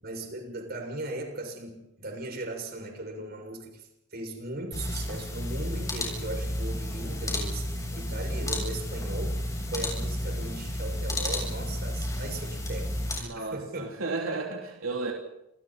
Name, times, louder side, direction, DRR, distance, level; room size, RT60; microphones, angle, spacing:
voice 1, 0.0-13.9, right 2 dB, 50° right, 3 dB, 6.9 m, -38 dB
sound 1, 4.7-13.2, left 1 dB, 15° left, 7.7 m, -32 dB
voice 2, 13.2-15.1, right 3 dB, 90° right, 0 dB, 3.4 m, -33 dB
30.0 x 28.0 x 4.4 m, 0.88 s
head